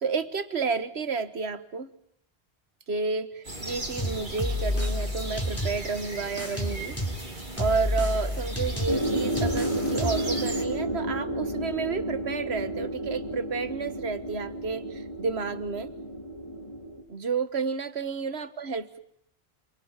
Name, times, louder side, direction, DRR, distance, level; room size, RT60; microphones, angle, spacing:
voice 1, 0.0-1.9 2.9-7.0 7.6-15.9 17.1-19.0, right 4 dB, 80° right, 12 dB, 1.6 m, -31 dB
sound 1, 3.4-10.6, right 2 dB, 50° right, 3.0 m, -38 dB
sound 2, 4.0-6.0 6.4-10.4, left 1 dB, 15° left, 3.9 m, -30 dB
sound 3, 8.9-17.0, right 1 dB, 30° left, 4.6 m, -31 dB
27.0 x 24.0 x 7.4 m, 0.72 s
omnidirectional pair, 1.1 m